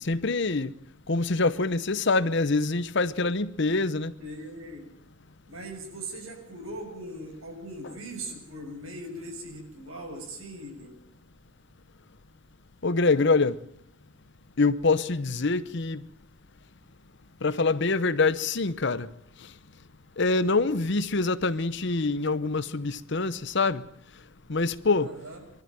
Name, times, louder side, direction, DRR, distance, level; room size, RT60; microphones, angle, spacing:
voice 1, 0.1-0.7 1.1-4.1 12.8-13.6 14.6-16.0 17.4-19.1 20.2-23.8 24.5-25.1, left 3 dB, 55° left, 0.9 m, -25 dB
voice 2, 4.2-4.9 5.5-10.9 25.0-25.4, right 1 dB, 85° right, 6.8 m, -40 dB
23.5 x 13.5 x 9.1 m
head